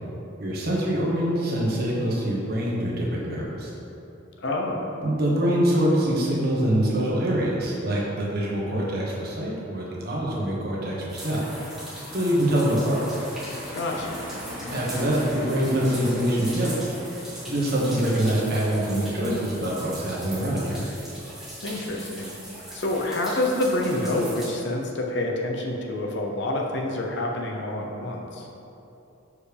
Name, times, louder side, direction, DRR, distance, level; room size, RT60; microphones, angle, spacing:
voice 1, 0.4-3.7 5.0-11.4 12.1-13.0 14.7-16.7 17.5-20.8, right 1 dB, 50° right, -5 dB, 1.2 m, -24 dB
voice 2, 4.4-4.9 13.8-14.2 21.6-22.3 22.7-28.5, left 1 dB, 60° left, 0 dB, 0.7 m, -27 dB
sound 1, 11.1-24.5, equal, ahead, 1.4 m, -38 dB
6.6 x 4.8 x 3.4 m, 3.0 s
head